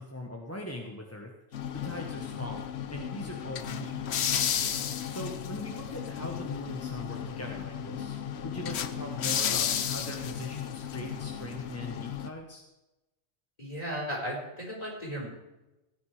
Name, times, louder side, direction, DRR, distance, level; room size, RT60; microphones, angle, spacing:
voice 1, 0.0-12.6, left 1 dB, 15° left, 1 dB, 1.2 m, -41 dB
sound 1, 1.5-12.3, left 8 dB, 65° left, 1.0 m, -33 dB
voice 2, 13.6-15.3, equal, 30° left, -1 dB, 4.8 m, -35 dB
17.0 x 9.7 x 4.9 m, 1.0 s
omnidirectional pair, 1.2 m